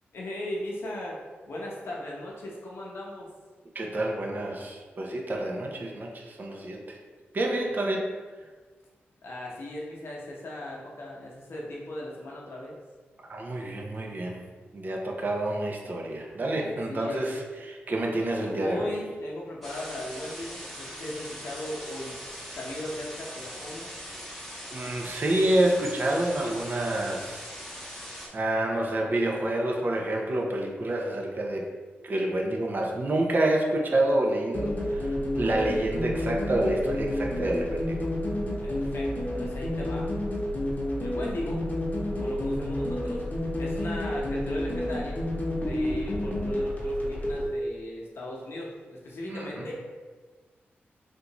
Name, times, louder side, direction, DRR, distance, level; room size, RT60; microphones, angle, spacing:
voice 1, 0.1-1.2 1.5-3.3 7.6-7.8 9.2-12.7 16.4-17.3 18.5-22.2 22.5-23.9 38.6-40.1 41.0-41.6 42.1-45.2 45.6-49.8, left 1 dB, 70° left, -3 dB, 0.8 m, -38 dB
voice 2, 3.7-7.0 7.3-8.1 13.2-14.4 14.7-19.0 24.7-27.5 28.3-31.7 32.0-38.0 49.3-49.7, right 1 dB, 45° right, 0 dB, 0.6 m, -28 dB
sound 1, 19.6-28.3, equal, ahead, 0.8 m, -41 dB
sound 2, 34.5-47.5, left 1 dB, 40° left, 0.8 m, -30 dB
3.5 x 2.5 x 2.9 m, 1.4 s
cardioid pair, 85°, 4 cm